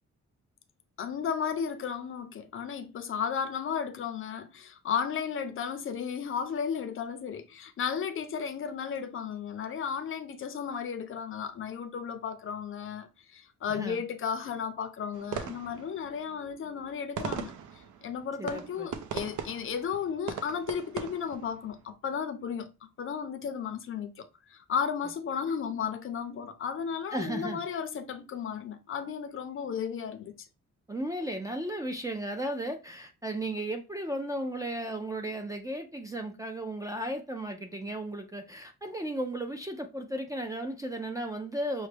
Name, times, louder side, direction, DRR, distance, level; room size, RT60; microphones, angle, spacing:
voice 1, 1.0-22.7 23.0-30.3, left 7 dB, 45° left, 0.5 m, -34 dB
voice 2, 13.7-14.0 18.4-18.9 27.1-27.6 30.9-41.9, right 1 dB, 10° right, 0.3 m, -35 dB
sound 1, 15.1-21.9, right 7 dB, 90° right, 0.7 m, -40 dB
6.1 x 2.1 x 3.3 m
wide cardioid pair, 180°, 29 cm